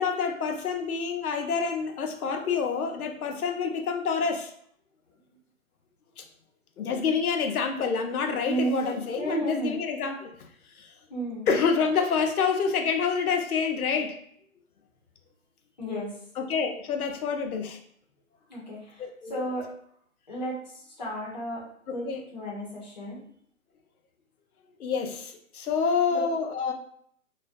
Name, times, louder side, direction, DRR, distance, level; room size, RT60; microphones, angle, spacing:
voice 1, 0.0-4.5 6.2-6.3 6.8-10.3 10.8-10.9 11.5-14.1 16.4-17.8 19.0-19.4 22.1-22.2 24.8-26.7, left 5 dB, 85° left, 4 dB, 0.6 m, -27 dB
voice 2, 8.4-9.8 11.1-11.5 15.8-16.1 18.5-19.7 20.3-21.6 21.9-22.1 22.3-23.2 26.1-26.2, right 1 dB, 30° left, -5 dB, 0.6 m, -33 dB
2.3 x 2.1 x 2.5 m, 0.64 s
hypercardioid pair, 170°, 42 cm